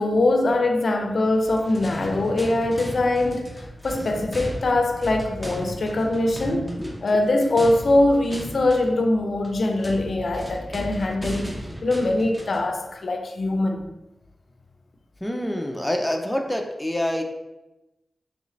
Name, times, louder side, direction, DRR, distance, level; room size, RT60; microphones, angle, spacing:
voice 1, 0.0-6.7 7.0-13.9, left 2 dB, 65° left, 0.5 m, -22 dB
sound 1, 1.3-12.7, equal, 10° right, 0.8 m, -36 dB
voice 2, 15.2-17.2, left 1 dB, 10° left, 0.5 m, -26 dB
3.7 x 3.2 x 3.1 m
cardioid pair, 55°, 0 cm